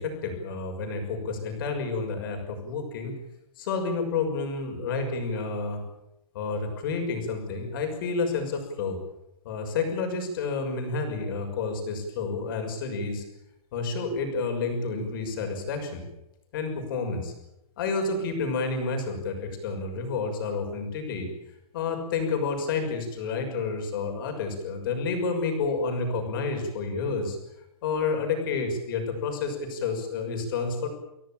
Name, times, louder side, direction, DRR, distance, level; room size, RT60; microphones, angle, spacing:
voice 1, 0.0-3.2 3.6-5.8 6.3-9.0 9.4-13.2 13.7-16.0 16.5-17.3 17.8-21.3 21.7-27.4 27.8-30.9, left 4 dB, 35° left, 4 dB, 6.3 m, -30 dB
25.5 x 17.5 x 9.0 m, 0.88 s
hypercardioid pair, 175°, 19 cm